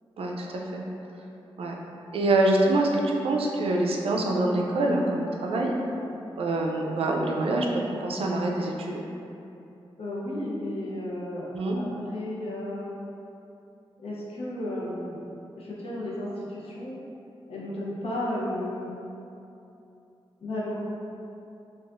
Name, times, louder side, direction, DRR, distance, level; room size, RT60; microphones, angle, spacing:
voice 1, 0.2-0.8 1.6-1.7 2.1-5.8 6.4-9.0 11.5-11.8, right 2 dB, 75° right, 0 dB, 0.4 m, -25 dB
voice 2, 10.0-12.9 14.0-15.2 15.6-17.0 17.5-18.9 20.4-20.8, left 1 dB, 85° left, -6 dB, 0.7 m, -33 dB
4.5 x 2.4 x 2.5 m, 2.8 s
cardioid pair, 70°, 10 cm